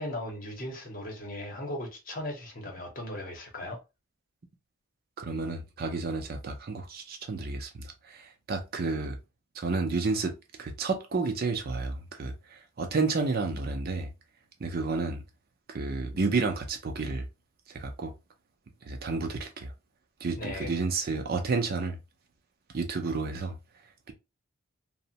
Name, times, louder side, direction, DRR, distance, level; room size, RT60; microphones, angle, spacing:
voice 1, 0.0-3.8 20.4-20.8, left 1 dB, 40° left, 0.8 m, -37 dB
voice 2, 5.2-9.2 9.6-10.3 10.6-14.1 14.6-15.2 15.7-17.3 17.7-18.1 18.9-19.7 20.2-22.0 22.7-23.5, right 3 dB, 45° right, 0.5 m, -31 dB
2.9 x 2.1 x 2.8 m
head